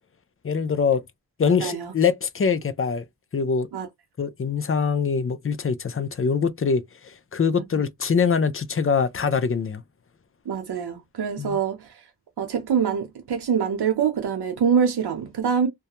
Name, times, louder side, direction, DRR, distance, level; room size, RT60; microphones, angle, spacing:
voice 1, 0.4-1.0 1.4-3.0 3.3-3.7 4.2-9.8 11.4-11.6, left 5 dB, 35° left, 0.5 m, -23 dB
voice 2, 1.6-1.9 3.7-3.9 10.5-12.0 12.4-15.7, right 7 dB, 75° right, 0.7 m, -24 dB
2.2 x 2.2 x 2.9 m
cardioid pair, 50°, 39 cm